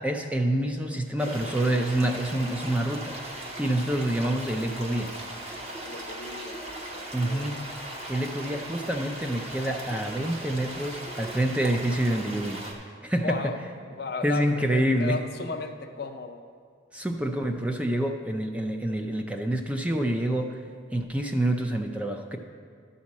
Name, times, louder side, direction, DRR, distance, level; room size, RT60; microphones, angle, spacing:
voice 1, 0.0-5.1 7.1-12.6 13.0-13.5 14.2-15.2 16.9-20.6 20.9-22.4, right 1 dB, 5° right, 4 dB, 0.4 m, -27 dB
sound 1, 1.2-12.7, right 1 dB, 30° right, 1.1 m, -38 dB
voice 2, 5.8-7.7 13.2-13.6 13.9-16.4, left 4 dB, 55° left, 6 dB, 0.6 m, -35 dB
11.5 x 4.2 x 7.2 m, 2.1 s
head